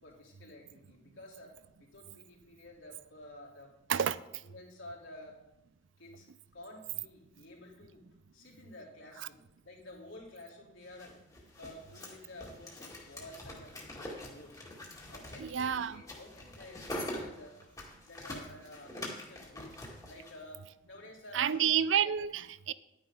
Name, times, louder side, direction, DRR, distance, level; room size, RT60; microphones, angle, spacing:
voice 1, 0.0-3.7 4.4-5.4 6.0-6.3 6.5-8.0 8.3-11.2 11.6-14.6 15.1-17.6 18.0-19.8 20.1-21.8, left 1 dB, 80° left, -4 dB, 3.5 m, -51 dB
sound 1, 10.9-20.3, left 1 dB, 20° left, 1.9 m, -44 dB
voice 2, 15.4-16.0 21.3-22.7, right 8 dB, 75° right, 16 dB, 0.4 m, -29 dB
11.5 x 9.5 x 3.8 m, 0.92 s
head